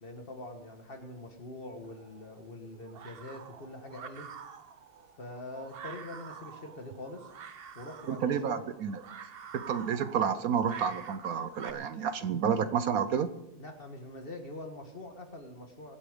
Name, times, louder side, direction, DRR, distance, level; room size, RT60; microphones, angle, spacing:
voice 1, 0.0-4.3 5.2-7.3 7.8-8.6 13.5-16.0, left 1 dB, 35° left, 4 dB, 1.8 m, -44 dB
sound 1, 1.8-11.7, right 7 dB, 50° right, 0.8 m, -47 dB
voice 2, 8.1-9.0 9.5-13.3, right 7 dB, 70° right, 12 dB, 1.1 m, -30 dB
23.0 x 8.6 x 5.1 m, 0.91 s
omnidirectional pair, 1.7 m